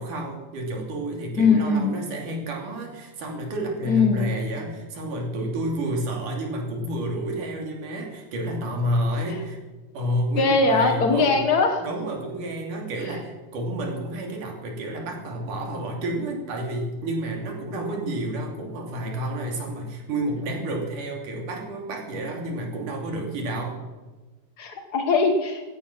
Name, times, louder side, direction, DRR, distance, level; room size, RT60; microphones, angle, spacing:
voice 1, 0.0-9.6 9.9-11.4 11.8-23.8, right 1 dB, 80° right, 0 dB, 4.4 m, -30 dB
voice 2, 1.4-1.9 3.8-4.2 9.3-9.4 10.3-11.8 13.0-13.1 24.6-25.6, left 4 dB, 55° left, 5 dB, 1.1 m, -21 dB
15.5 x 14.5 x 6.0 m, 1.2 s
omnidirectional pair, 3.6 m